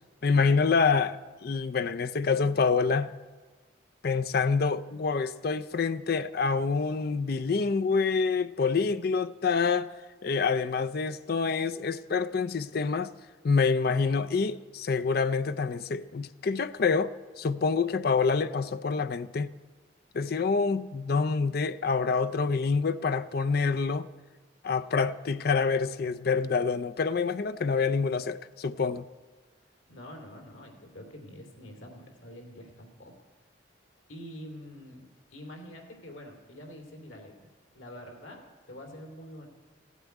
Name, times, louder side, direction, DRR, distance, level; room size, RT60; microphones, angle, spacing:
voice 1, 0.2-3.1 4.0-9.9 10.2-13.1 13.4-17.1 17.4-19.5 20.1-24.1 24.6-29.0, left 5 dB, 50° left, 0.4 m, -27 dB
voice 2, 29.9-33.1 34.1-35.0 35.3-39.5, equal, 85° left, 2.8 m, -46 dB
15.5 x 8.2 x 9.2 m
head